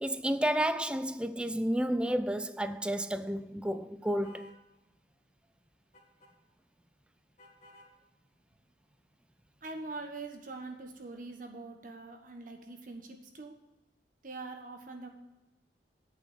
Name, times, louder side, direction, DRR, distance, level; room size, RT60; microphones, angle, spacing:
voice 1, 0.0-4.5, right 1 dB, 5° right, 0.3 m, -31 dB
sound 1, 4.2-4.6 5.9-6.3 7.4-7.9, left 1 dB, 40° left, 2.0 m, -56 dB
voice 2, 9.6-13.5 14.2-15.1, right 3 dB, 45° right, 1.3 m, -43 dB
9.0 x 5.6 x 8.2 m
head